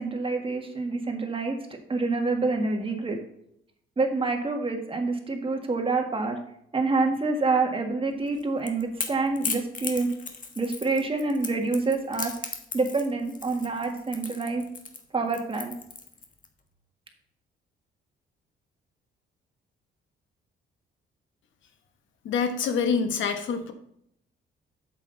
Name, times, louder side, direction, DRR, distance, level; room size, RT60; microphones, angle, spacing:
voice 1, 0.0-3.2 4.0-6.4 6.7-10.1 10.6-12.3 12.7-14.6 15.1-15.7, right 3 dB, 25° right, 3 dB, 1.8 m, -27 dB
Crackle / Crack, 8.3-16.5, left 5 dB, 40° left, 1.4 m, -36 dB
voice 2, 22.2-23.7, left 5 dB, 75° left, 7 dB, 1.3 m, -26 dB
8.2 x 7.5 x 4.0 m, 0.73 s
cardioid pair, 90°, 20 cm